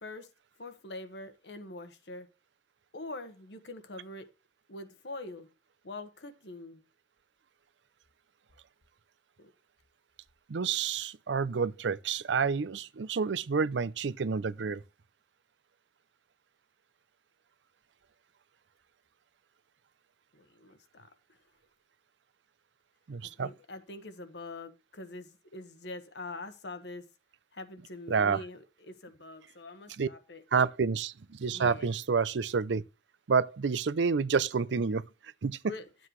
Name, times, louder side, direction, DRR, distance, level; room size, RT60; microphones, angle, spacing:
voice 1, 0.6-2.3 2.9-4.3 4.7-5.5 5.8-6.8 9.4-9.5 20.3-21.1 23.2-27.0 27.5-30.4 31.5-31.9 35.6-35.8, left 2 dB, 75° left, 1.3 m, -44 dB
voice 2, 10.5-14.8 23.1-23.5 28.1-28.4 30.0-30.1 30.5-32.8 33.3-35.0 35.4-35.7, right 5 dB, 90° right, 0.5 m, -29 dB
11.5 x 7.7 x 3.2 m
head